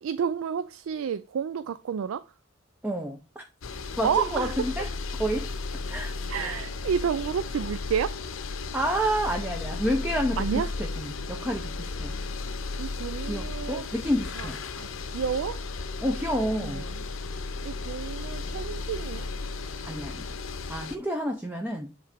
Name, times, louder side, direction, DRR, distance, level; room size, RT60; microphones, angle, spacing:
voice 1, 0.0-2.2 4.0-4.9 6.3-8.2 10.4-10.7 11.4-11.6 12.8-13.8 14.4-14.5 14.8-15.6 16.4-17.0 17.6-19.3, right 7 dB, 80° right, 0.3 m, -30 dB
voice 2, 2.8-3.4 4.0-4.9 5.2-5.5 5.8-6.6 8.7-10.5 10.8-12.1 13.2-14.6 16.0-16.9 19.8-20.3 20.7-21.9, equal, 10° right, 0.6 m, -29 dB
sound 1, 3.6-21.0, left 3 dB, 80° left, 0.7 m, -34 dB
7.6 x 3.3 x 5.0 m
head